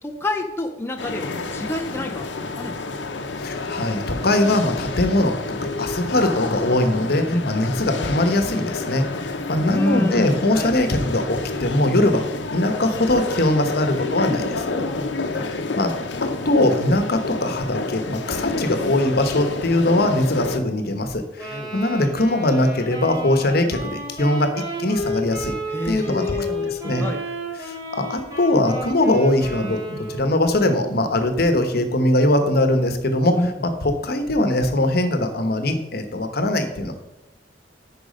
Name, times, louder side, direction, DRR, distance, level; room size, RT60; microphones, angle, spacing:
voice 1, 0.0-2.3 2.6-2.9 5.6-5.7 7.3-7.5 9.6-10.8 14.1-15.5 19.7-19.9 21.5-21.7 25.7-27.2 33.3-33.5, left 1 dB, 15° left, 2 dB, 0.5 m, -28 dB
sound 1, 1.0-20.6, left 3 dB, 75° left, 0.8 m, -29 dB
voice 2, 3.4-12.2 12.5-14.6 15.3-15.9 16.2-24.5 24.8-25.5 25.8-26.4 26.7-27.1 27.6-33.3 33.8-36.9, left 1 dB, 60° left, 8 dB, 1.1 m, -21 dB
Wind instrument woodwind instrument, 21.4-30.4, equal, 20° right, 2.8 m, -32 dB
10.0 x 4.8 x 5.3 m, 1.0 s
head